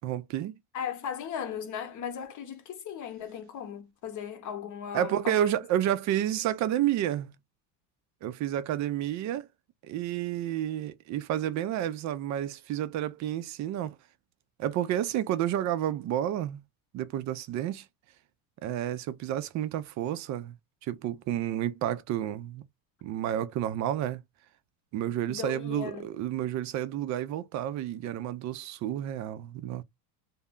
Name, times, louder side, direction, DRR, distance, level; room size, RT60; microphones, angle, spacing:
voice 1, 0.0-0.5 4.9-7.3 8.2-9.5 9.8-14.0 14.6-16.6 16.9-17.9 18.6-20.6 20.8-22.6 23.0-24.2 24.9-29.8, right 11 dB, 40° right, 0.4 m, -30 dB
voice 2, 0.7-5.5 25.3-26.1, left 8 dB, 40° left, 0.9 m, -37 dB
2.1 x 2.1 x 3.5 m
supercardioid pair, 105°, 48 cm